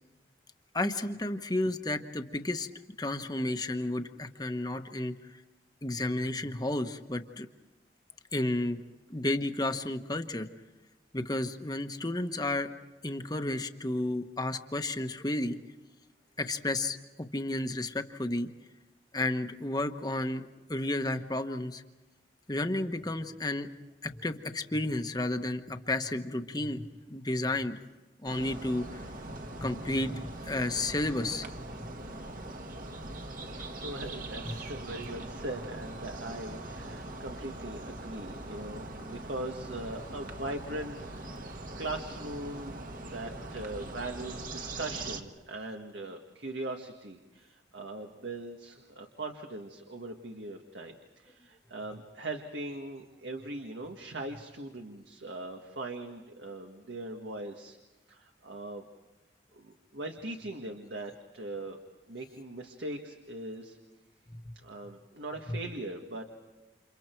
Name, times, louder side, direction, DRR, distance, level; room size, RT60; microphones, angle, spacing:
voice 1, 0.7-2.7 3.0-5.1 5.8-7.5 8.3-8.8 9.1-10.5 11.1-12.7 13.0-15.6 16.4-17.0 17.3-18.5 19.1-21.8 22.5-23.7 24.0-27.7 28.2-29.0 29.6-31.5, left 1 dB, 20° left, 7 dB, 1.1 m, -32 dB
sound 1, 28.2-45.2, right 2 dB, 50° right, 1.6 m, -41 dB
voice 2, 33.5-41.5 41.8-57.8 58.1-58.8 59.5-61.8 62.1-63.8 64.6-66.2, right 2 dB, 85° right, 3 dB, 1.7 m, -40 dB
30.0 x 28.0 x 4.6 m, 1.1 s
head